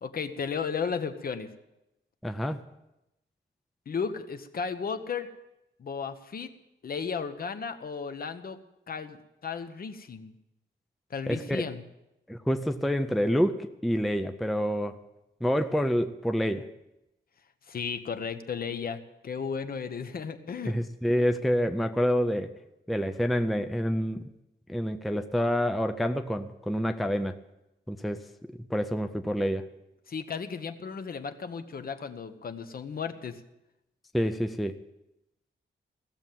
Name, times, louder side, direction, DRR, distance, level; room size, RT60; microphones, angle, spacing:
voice 1, 0.0-1.5 3.9-5.3 5.8-6.5 6.8-8.6 8.9-10.3 11.1-11.8 17.7-20.8 30.1-33.4, left 6 dB, 50° left, 9 dB, 1.0 m, -34 dB
voice 2, 2.2-2.6 11.3-11.6 12.3-15.0 15.4-16.7 20.6-22.5 22.9-24.2 24.7-27.4 27.9-28.2 28.7-29.7 34.1-34.8, equal, ahead, 7 dB, 0.5 m, -27 dB
16.5 x 7.2 x 9.1 m, 0.91 s
wide cardioid pair, 165°, 20 cm